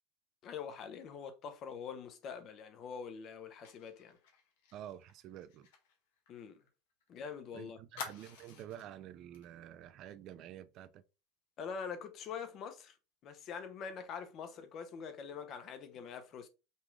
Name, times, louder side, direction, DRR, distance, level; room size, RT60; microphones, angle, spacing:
voice 1, 0.4-4.2 6.3-6.6 7.1-7.8 11.6-13.0 13.2-16.5, left 6 dB, 45° left, 0.8 m, -44 dB
Fire, 3.6-7.1 7.3-7.4 7.9-8.9 9.3-9.5 9.8-10.1, left 6 dB, 80° left, 1.4 m, -50 dB
voice 2, 4.7-5.7 7.5-11.0, right 11 dB, 50° right, 0.5 m, -49 dB
5.3 x 2.4 x 3.2 m
supercardioid pair, 130°, 0 cm